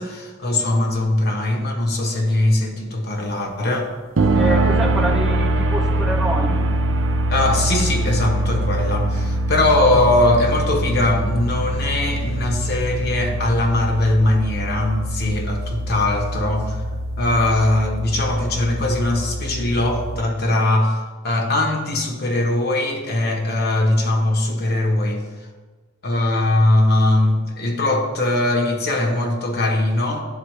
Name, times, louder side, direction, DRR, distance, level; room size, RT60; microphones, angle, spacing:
voice 1, 0.0-3.9 7.3-16.8 17.2-21.0 21.2-25.2 26.0-30.2, left 1 dB, 55° left, 2 dB, 1.0 m, -20 dB
sound 1, 4.2-20.2, right 1 dB, 90° right, 0.6 m, -23 dB
voice 2, 4.3-6.7, equal, 5° right, -1 dB, 0.6 m, -26 dB
11.5 x 4.1 x 3.2 m, 1.3 s
head